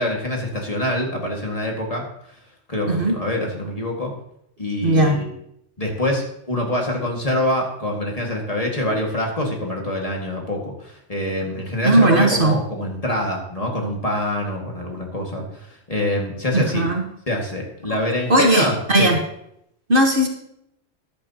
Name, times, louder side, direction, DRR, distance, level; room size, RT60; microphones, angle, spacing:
voice 1, 0.0-2.0 2.7-4.1 4.6-5.3 5.8-15.4 15.9-16.9 17.3-19.1, left 1 dB, 30° left, 0 dB, 2.1 m, -25 dB
voice 2, 2.9-3.2 4.8-5.2 11.8-12.6 16.5-17.1 17.9-18.0 18.3-19.2 19.9-20.3, right 1 dB, 50° right, 2 dB, 1.5 m, -17 dB
14.0 x 11.0 x 2.9 m, 0.74 s
omnidirectional pair, 1.2 m